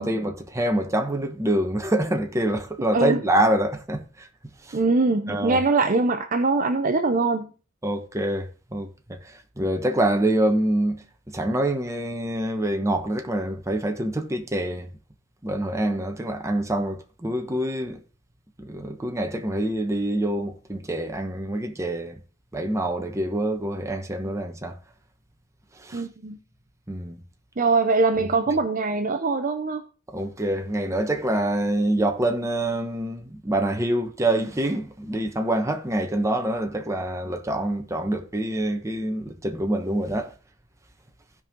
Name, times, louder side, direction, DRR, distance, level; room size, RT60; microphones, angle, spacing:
voice 1, 0.0-4.3 4.6-4.8 5.3-5.6 7.8-14.9 15.4-18.0 18.6-22.2 22.5-24.8 25.7-26.1 26.9-27.2 30.1-40.3, right 1 dB, 15° right, 1.1 m, -26 dB
voice 2, 4.7-7.5 25.9-26.4 27.6-29.8, right 3 dB, 40° right, 0.6 m, -22 dB
16.0 x 5.5 x 3.7 m
head